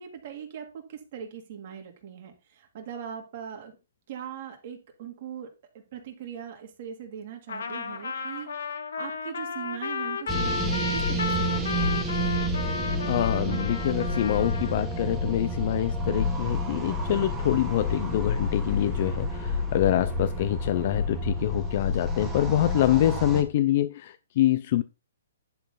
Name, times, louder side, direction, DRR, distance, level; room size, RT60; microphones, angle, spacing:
voice 1, 0.0-3.7 4.1-5.5 5.9-8.5 9.0-12.0, right 9 dB, 35° right, 2.4 m, -40 dB
Trumpet, 7.5-14.9, left 5 dB, 70° left, 1.5 m, -33 dB
sound 1, 10.3-23.4, left 1 dB, 5° right, 1.5 m, -29 dB
voice 2, 12.7-24.8, left 12 dB, 35° left, 0.5 m, -26 dB
10.5 x 4.5 x 5.4 m
hypercardioid pair, 175°, 0 cm